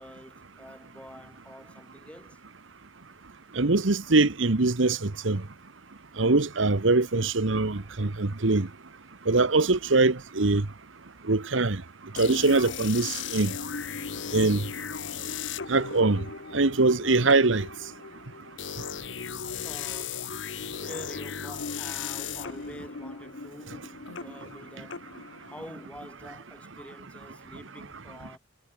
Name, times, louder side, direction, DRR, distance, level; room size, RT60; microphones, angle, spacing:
voice 1, 0.0-2.4 14.0-14.3 15.8-15.9 19.6-20.4 20.8-28.4, equal, 5° left, 6.7 m, -47 dB
voice 2, 3.5-5.4 6.2-8.7 9.3-10.6 11.3-11.8 12.1-13.5 14.3-14.6 15.7-16.2 16.5-17.7, right 3 dB, 75° right, 1.2 m, -23 dB
sound 1, 12.2-25.9, left 6 dB, 70° left, 1.1 m, -37 dB
head